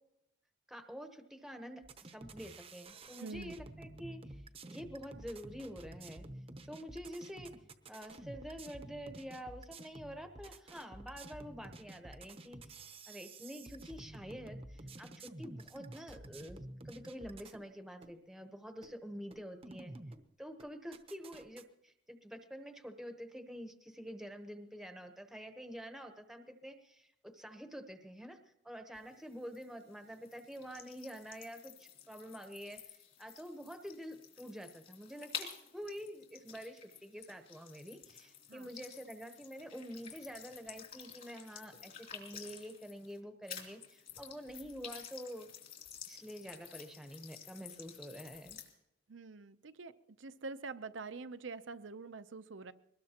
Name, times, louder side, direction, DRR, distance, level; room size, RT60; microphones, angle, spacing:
voice 1, 0.7-4.4 4.7-6.3 6.7-7.5 7.9-16.6 16.8-19.9 20.4-45.5 46.1-48.6, equal, ahead, 6 dB, 1.0 m, -47 dB
sound 1, 1.8-17.6 18.0-18.1 18.8-18.9 19.3-20.2 20.6-21.6, right 2 dB, 30° right, 0.8 m, -51 dB
voice 2, 3.2-3.6 38.5-38.7 49.1-49.9 50.2-52.7, right 4 dB, 70° right, 12 dB, 0.7 m, -45 dB
sound 2, 28.9-43.2 43.5-48.7, left 7 dB, 45° left, 3.1 m, -51 dB
22.5 x 20.0 x 3.0 m, 0.87 s
head